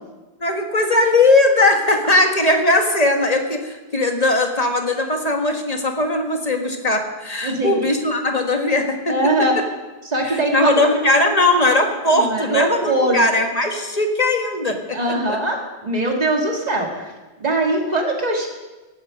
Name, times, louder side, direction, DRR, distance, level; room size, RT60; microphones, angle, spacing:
voice 1, 0.4-9.1 10.2-15.4, left 2 dB, 40° left, 4 dB, 1.7 m, -19 dB
voice 2, 7.4-7.8 9.1-9.6 10.1-10.7 12.1-13.2 14.9-17.1 17.4-18.5, right 2 dB, 40° right, 1 dB, 2.4 m, -21 dB
17.5 x 11.5 x 5.3 m, 1.2 s
omnidirectional pair, 1.1 m